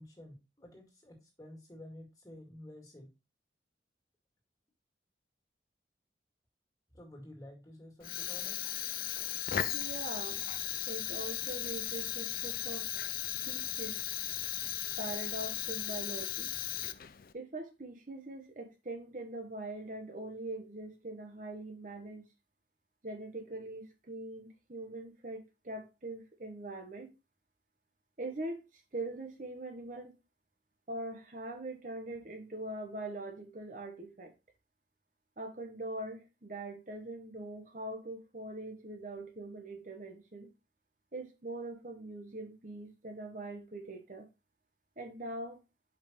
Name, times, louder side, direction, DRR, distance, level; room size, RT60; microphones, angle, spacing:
voice 1, 0.0-3.1 6.9-8.6, left 1 dB, 20° left, 2.0 m, -51 dB
Fire, 8.0-17.3, left 12 dB, 50° left, 0.4 m, -36 dB
voice 2, 9.7-10.4 10.7-12.9 13.5-14.0 15.0-16.5 17.3-22.3 23.0-27.1 28.2-28.6 28.9-30.1 30.9-34.3 35.4-40.5 41.1-44.2 45.0-45.6, right 2 dB, 45° right, 1.0 m, -42 dB
5.3 x 5.0 x 4.3 m
head